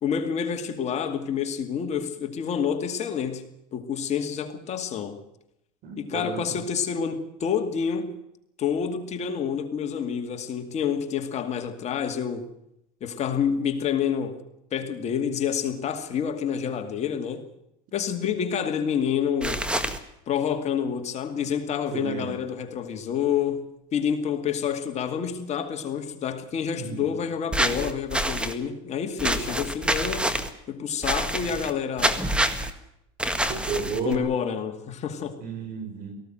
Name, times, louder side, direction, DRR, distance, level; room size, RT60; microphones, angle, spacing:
voice 1, 0.0-5.2 6.0-8.1 8.6-12.5 13.0-14.4 14.7-17.5 17.9-19.7 20.3-30.3 30.7-32.2 34.0-35.4, left 7 dB, 40° left, 2.3 m, -28 dB
voice 2, 5.8-6.6 21.9-22.3 26.8-27.1 33.5-34.3 35.4-36.1, right 5 dB, 55° right, 5.7 m, -32 dB
sound 1, 19.4-20.0 27.5-28.5 29.2-30.5 31.0-31.7 32.0-32.7 33.2-34.2, right 1 dB, 5° right, 1.7 m, -26 dB
18.5 x 15.5 x 9.1 m
supercardioid pair, 115°, 17 cm